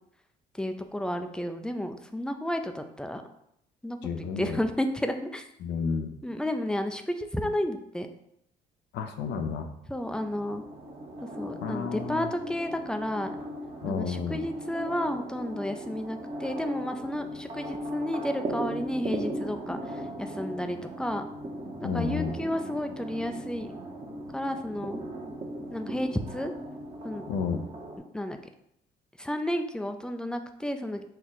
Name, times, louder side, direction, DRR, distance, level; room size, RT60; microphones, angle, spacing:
voice 1, 0.5-3.2 3.8-5.5 6.2-8.1 9.9-10.6 11.4-13.4 13.9-21.3 21.8-23.7 24.3-25.0 25.7-26.5 27.0-27.3 28.1-28.4 29.2-31.0, left 1 dB, 5° left, 7 dB, 0.4 m, -32 dB
voice 2, 4.0-4.6 5.6-6.1 8.9-9.7 11.6-12.3 13.8-14.4 21.8-22.3 27.3-27.6, left 6 dB, 80° left, 6 dB, 0.6 m, -31 dB
sound 1, 10.0-28.0, right 1 dB, 35° right, 1.0 m, -38 dB
4.3 x 2.4 x 3.9 m, 0.77 s
cardioid pair, 80°, 18 cm